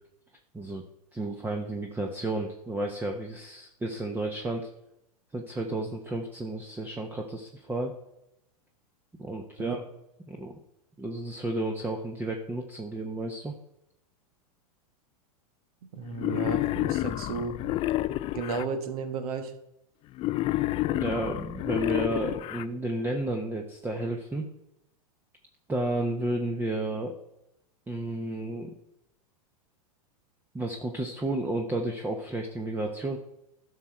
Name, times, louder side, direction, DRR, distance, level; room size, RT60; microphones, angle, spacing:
voice 1, 1.1-4.7 5.3-7.9 9.2-9.8 10.3-10.6 11.0-13.5 20.9-24.5 25.7-27.1 27.9-28.8 30.5-33.2, right 2 dB, 10° right, 3 dB, 0.9 m, -32 dB
voice 2, 15.9-17.6 18.3-19.5, right 4 dB, 70° right, 8 dB, 1.6 m, -33 dB
Wild animals, 16.2-18.6 20.2-22.6, left 16 dB, 30° left, 0.4 m, -29 dB
11.5 x 6.4 x 4.5 m, 0.84 s
hypercardioid pair, 120°, 20 cm